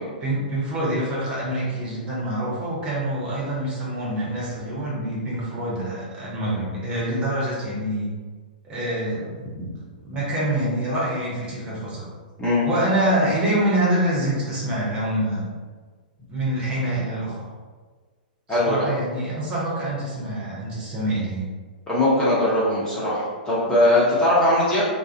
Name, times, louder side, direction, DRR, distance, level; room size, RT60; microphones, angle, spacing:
voice 1, 0.2-8.1 8.6-9.4 10.0-12.1 12.6-15.5 16.3-17.5 18.6-21.4, right 1 dB, 20° right, -6 dB, 0.7 m, -25 dB
voice 2, 18.5-18.9 21.9-24.8, left 1 dB, 10° left, -9 dB, 0.6 m, -20 dB
2.3 x 2.0 x 2.5 m, 1.4 s
figure-of-eight pair, 105°, 5 cm